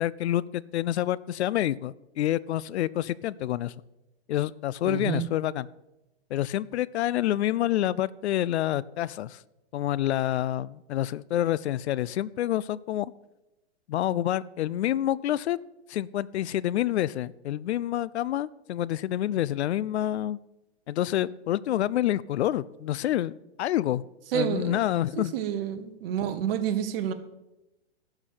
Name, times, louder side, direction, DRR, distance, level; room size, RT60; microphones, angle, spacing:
voice 1, 0.0-3.7 4.3-5.7 6.3-9.4 9.7-13.1 13.9-15.6 15.9-20.4 20.9-23.3 23.6-24.0 24.3-25.3, left 13 dB, 75° left, 20 dB, 0.5 m, -27 dB
voice 2, 4.8-5.3 24.3-24.8 25.3-27.1, right 9 dB, 55° right, 10 dB, 1.3 m, -29 dB
12.0 x 4.8 x 8.7 m, 0.96 s
hypercardioid pair, 120°, 33 cm